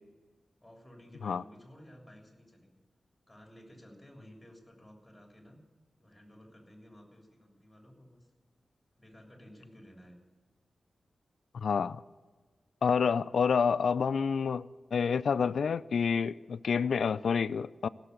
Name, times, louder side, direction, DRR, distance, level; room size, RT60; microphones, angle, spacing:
voice 1, 0.6-2.8 3.3-5.6 6.0-8.3 9.0-10.2 16.4-16.6, equal, 10° left, 3.3 m, -54 dB
voice 2, 11.5-12.0 12.8-17.9, left 6 dB, 80° left, 0.3 m, -28 dB
16.5 x 6.8 x 8.0 m
wide cardioid pair, 85°, 0 cm